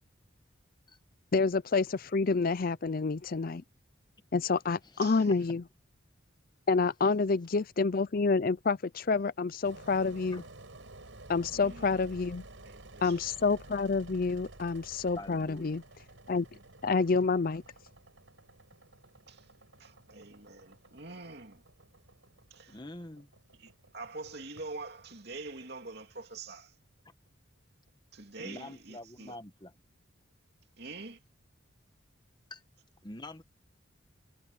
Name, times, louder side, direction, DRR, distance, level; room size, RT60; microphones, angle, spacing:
voice 1, 1.3-3.6 4.3-5.6 6.7-10.4 11.3-12.4 13.0-15.8 16.3-16.5 16.8-17.6, left 4 dB, 45° left, 0.5 m, -28 dB
voice 2, 5.0-5.3 11.5-11.9 12.6-13.2 19.3-19.4 19.8-21.6 22.5-22.8 23.6-26.7 28.1-29.3 30.8-31.2, right 3 dB, 50° right, 3.0 m, -45 dB
Engine, 9.6-26.5, right 2 dB, 70° right, 5.5 m, -53 dB
voice 3, 15.1-15.8 22.7-23.3 28.4-29.7 32.5-32.6 33.0-33.4, left 1 dB, 20° left, 1.2 m, -45 dB
head